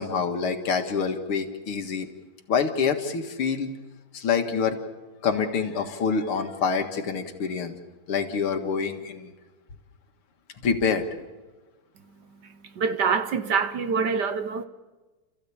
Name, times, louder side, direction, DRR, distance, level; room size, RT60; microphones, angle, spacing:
voice 1, 0.0-2.1 2.5-3.7 4.1-4.8 5.2-7.7 8.1-9.3 10.6-11.1, left 5 dB, 80° left, 2.6 m, -26 dB
voice 2, 12.8-14.6, right 5 dB, 60° right, 1.3 m, -25 dB
30.0 x 15.0 x 8.7 m
omnidirectional pair, 2.4 m